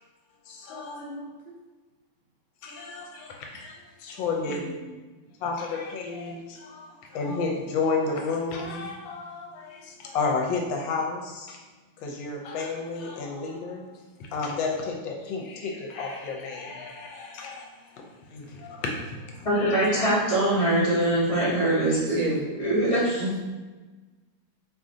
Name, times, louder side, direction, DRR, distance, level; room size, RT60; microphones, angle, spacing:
voice 1, 0.5-1.1 2.6-4.6 5.4-11.6 12.0-20.2, left 4 dB, 75° left, 1 dB, 1.4 m, -32 dB
voice 2, 1.0-1.3 4.5-4.7 21.8-22.4 23.2-23.5, right 1 dB, 80° right, -4 dB, 1.3 m, -31 dB
voice 3, 19.4-22.2 22.6-23.2, right 1 dB, 20° left, -8 dB, 1.0 m, -23 dB
3.1 x 2.6 x 3.7 m, 1.2 s
omnidirectional pair, 2.1 m